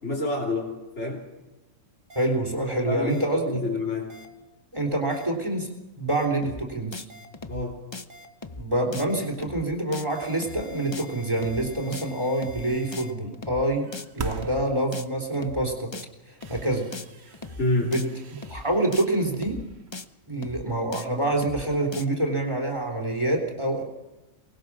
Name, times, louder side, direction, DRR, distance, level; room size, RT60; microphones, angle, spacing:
voice 1, 0.0-0.7 1.0-1.2 2.9-4.1 7.5-7.8 17.6-17.9, left 2 dB, 60° left, -5 dB, 3.6 m, -27 dB
sound 1, 2.1-2.2 3.1-3.2 4.1-4.2 5.1-5.2 6.1-6.2 7.1-7.2 8.1-8.2 9.1-9.2 10.1-13.1, left 1 dB, 75° right, 2.2 m, -48 dB
voice 2, 2.2-3.6 4.7-5.7 6.0-7.0 8.6-13.9 14.1-15.9 16.3-16.9 17.2-17.3 17.8-18.0 18.5-19.6 20.3-23.8, right 1 dB, 20° right, 2 dB, 3.5 m, -26 dB
sound 2, 6.4-6.6 6.9-7.1 7.3-7.6 7.9-8.0 8.4-8.6 8.9-9.1 9.3-9.6 9.9-10.1 10.4-10.6 10.9-11.1 11.3-11.6 11.9-12.1 12.4-12.6 12.9-13.0 13.3-13.6 13.9-14.1 14.4-14.6 14.9-15.1 15.3-15.6 15.9-16.1 16.4-16.6 16.9-17.1 17.3-17.6 17.9-18.1 18.4-18.6 18.9-19.1 19.3-19.6 19.9-20.0 20.4-20.6 20.9-21.1 21.3-21.6 21.9-22.0, left 3 dB, 25° left, 0.8 m, -38 dB
sound 3, 13.8-15.2 15.8-15.9 16.3-20.2, right 5 dB, 55° right, 1.3 m, -42 dB
24.0 x 20.0 x 6.2 m, 1.0 s
omnidirectional pair, 1.3 m